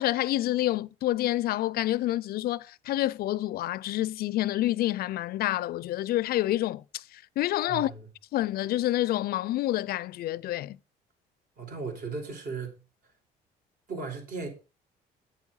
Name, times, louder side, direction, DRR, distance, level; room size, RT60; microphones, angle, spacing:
voice 1, 0.0-7.9 8.3-10.8, left 15 dB, 65° left, 0.5 m, -28 dB
voice 2, 7.7-8.1 11.6-13.1 13.9-14.5, right 4 dB, 55° right, 4.2 m, -37 dB
9.0 x 7.2 x 5.5 m
cardioid pair, 110°, 17 cm